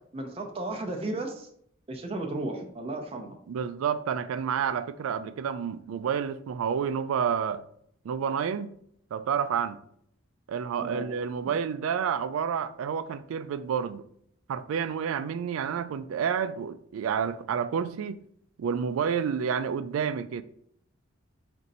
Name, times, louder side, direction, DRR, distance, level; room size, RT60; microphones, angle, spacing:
voice 1, 0.0-1.5 1.9-3.4 10.8-11.0, right 2 dB, 30° right, 0.4 m, -34 dB
voice 2, 3.5-7.6 8.0-8.8 9.1-9.8 10.5-14.0 14.5-18.2 18.6-20.4, right 7 dB, 90° right, 0.3 m, -29 dB
4.2 x 2.6 x 3.9 m
head